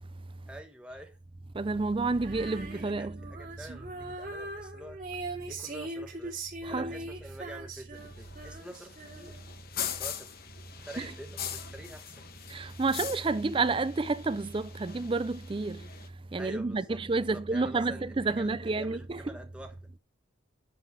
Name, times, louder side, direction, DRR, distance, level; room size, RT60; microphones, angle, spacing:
voice 1, 0.5-1.2 2.5-9.4 9.9-10.3 10.7-12.1 16.4-19.9, right 1 dB, 5° right, 1.2 m, -47 dB
voice 2, 1.5-3.1 6.6-6.9 11.0-11.1 12.5-15.8 16.3-19.2, right 3 dB, 25° right, 0.4 m, -30 dB
Female singing, 2.2-9.6, right 2 dB, 40° right, 2.8 m, -41 dB
sound 1, 7.9-16.1, left 9 dB, 50° left, 1.1 m, -42 dB
11.0 x 3.9 x 6.2 m
head